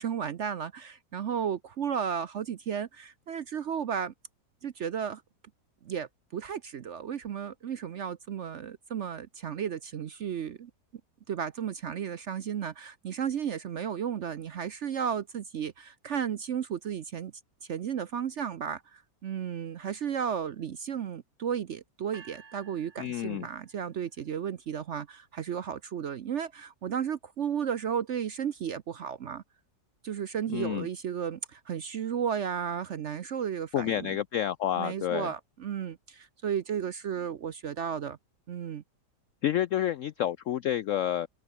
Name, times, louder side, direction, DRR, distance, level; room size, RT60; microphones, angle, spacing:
voice 1, 0.0-4.1 4.6-5.2 5.8-10.7 11.3-17.3 17.6-29.4 30.0-34.2 34.8-38.2 38.5-38.8, right 8 dB, 55° right, 0.8 m, -34 dB
sound 1, 22.1-24.2, right 6 dB, 85° right, 2.9 m, -54 dB
voice 2, 23.0-23.5 30.5-30.9 33.7-35.3 39.4-41.3, left 11 dB, 70° left, 0.8 m, -29 dB
omnidirectional pair, 1.8 m